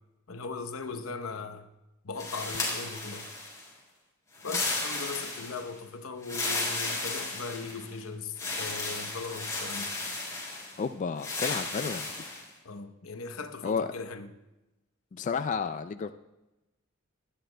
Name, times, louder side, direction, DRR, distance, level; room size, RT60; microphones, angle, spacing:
voice 1, 0.3-1.7 2.0-3.3 4.4-10.0 12.6-14.3, left 4 dB, 85° left, 0.9 m, -39 dB
sound 1, 2.2-3.7 4.4-5.7 6.2-7.9 8.4-10.8 11.2-12.4, left 2 dB, 15° left, 4.3 m, -34 dB
voice 2, 10.8-12.3 13.6-13.9 15.1-16.1, left 5 dB, 35° left, 0.3 m, -32 dB
23.5 x 10.0 x 2.2 m
head